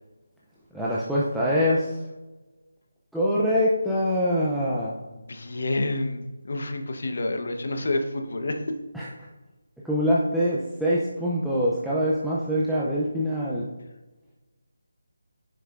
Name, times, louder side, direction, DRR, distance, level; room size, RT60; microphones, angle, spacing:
voice 1, 0.7-2.0 3.1-4.9 8.9-9.1 9.8-13.7, equal, ahead, -8 dB, 0.5 m, -24 dB
voice 2, 5.1-8.8, left 2 dB, 50° left, 6 dB, 1.0 m, -29 dB
9.8 x 6.7 x 2.5 m, 1.2 s
figure-of-eight pair, 175°, 0 cm